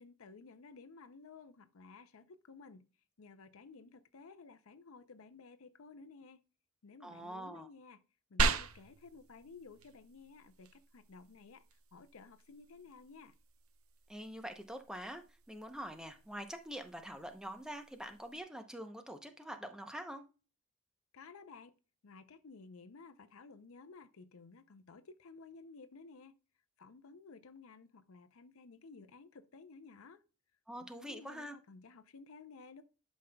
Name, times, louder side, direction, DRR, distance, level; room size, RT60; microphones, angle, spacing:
voice 1, 0.0-2.9 3.2-6.4 6.8-8.0 8.3-11.6 11.9-13.4 21.1-21.7 22.0-26.3 26.8-30.2 30.8-32.8, left 4 dB, 80° left, 0.6 m, -55 dB
voice 2, 7.0-7.7 14.1-20.2 30.7-31.6, equal, 5° right, 0.7 m, -45 dB
sound 1, 8.4-18.4, right 4 dB, 80° right, 0.7 m, -41 dB
11.5 x 5.2 x 2.2 m
head